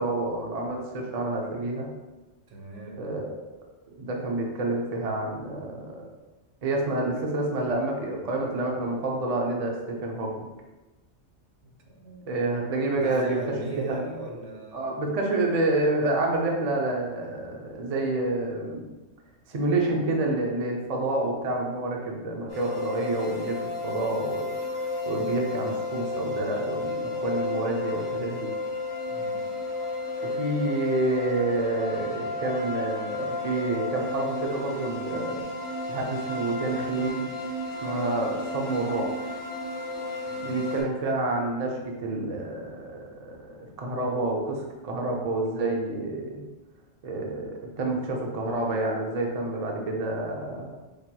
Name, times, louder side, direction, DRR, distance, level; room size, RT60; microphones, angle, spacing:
voice 1, 0.0-1.9 3.0-3.4 4.0-6.1 6.6-10.5 12.3-13.3 13.8-14.0 14.7-18.9 19.5-24.5 25.1-28.5 30.2-35.4 35.9-37.3 37.8-39.2 40.4-46.5 47.0-50.7, right 2 dB, 50° right, 0 dB, 0.5 m, -28 dB
voice 2, 2.5-3.0 11.6-12.3 13.0-14.9 29.1-29.5 40.3-40.6, right 2 dB, 70° right, 0 dB, 1.0 m, -38 dB
sound 1, 22.5-40.8, left 2 dB, 45° left, 1.2 m, -32 dB
4.9 x 2.9 x 2.2 m, 1.1 s
omnidirectional pair, 1.3 m